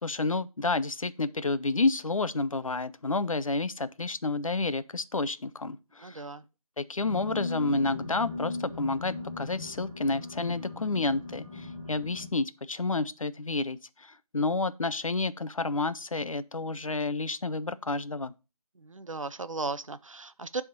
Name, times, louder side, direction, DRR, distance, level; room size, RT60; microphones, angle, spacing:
voice 1, 0.0-6.2 6.8-18.3, left 3 dB, 65° left, 0.6 m, -30 dB
voice 2, 6.0-6.4 18.8-20.6, right 3 dB, 60° right, 0.6 m, -36 dB
sound 1, 7.0-12.3, left 3 dB, ahead, 1.4 m, -38 dB
9.4 x 3.6 x 5.2 m
figure-of-eight pair, 175°, 19 cm